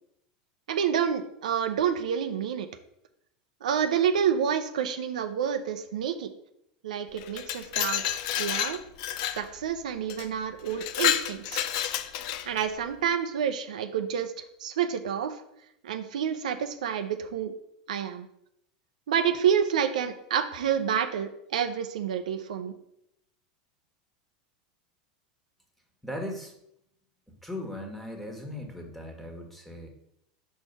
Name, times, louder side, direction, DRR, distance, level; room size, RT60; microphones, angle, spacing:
voice 1, 0.7-2.7 3.6-6.3 6.8-8.0 8.4-8.8 9.4-11.7 12.5-14.3 14.6-15.4 15.8-17.5 17.9-18.3 19.1-22.7, right 8 dB, 90° right, 8 dB, 0.5 m, -28 dB
Glass, 7.2-9.4 10.1-10.3 10.7-12.7, left 11 dB, 65° left, 0.5 m, -30 dB
voice 2, 26.0-26.5 27.4-29.9, left 1 dB, 5° left, 2 dB, 1.5 m, -38 dB
4.6 x 4.5 x 5.6 m, 0.77 s
supercardioid pair, 110°, 4 cm